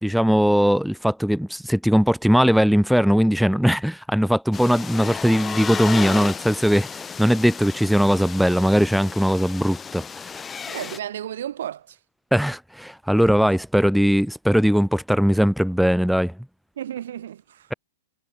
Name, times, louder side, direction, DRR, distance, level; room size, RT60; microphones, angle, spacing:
voice 1, 0.0-10.4 12.3-16.3, equal, ahead, 0.8 m, -20 dB
sound 1, 4.5-11.0, left 6 dB, 15° left, 3.0 m, -33 dB
voice 2, 10.7-12.0 13.4-13.5 16.8-17.7, right 10 dB, 75° right, 1.7 m, -33 dB
hypercardioid pair, 125°, 0 cm